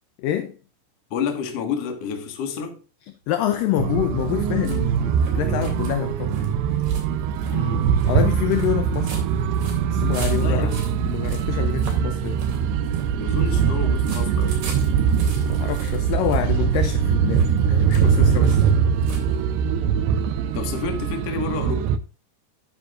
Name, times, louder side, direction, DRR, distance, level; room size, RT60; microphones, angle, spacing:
voice 1, 0.2-0.6 3.3-6.4 8.1-9.2 9.9-10.7 11.0-12.4 15.5-18.7, left 12 dB, 90° left, 1.9 m, -26 dB
voice 2, 1.1-2.8 7.5-7.9 10.4-10.8 13.2-14.6 20.5-21.9, left 6 dB, 50° left, 2.1 m, -29 dB
sound 1, 3.4-19.8, right 3 dB, 55° right, 4.6 m, -41 dB
sound 2, 3.8-22.0, right 7 dB, 80° right, 2.8 m, -22 dB
12.0 x 8.7 x 2.5 m
omnidirectional pair, 4.9 m